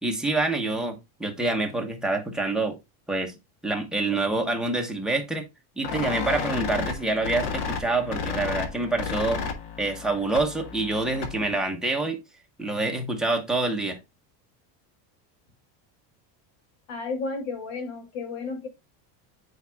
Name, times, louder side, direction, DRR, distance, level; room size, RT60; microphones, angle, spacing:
voice 1, 0.0-2.8 3.1-3.3 3.6-5.4 5.8-9.4 9.8-12.2 12.6-14.0, right 2 dB, ahead, 1.0 m, -26 dB
sound 1, 5.8-11.5, left 5 dB, 85° left, 1.5 m, -32 dB
voice 2, 16.9-18.7, left 4 dB, 70° left, 2.7 m, -32 dB
8.9 x 4.7 x 2.3 m
cardioid pair, 160°, 45 cm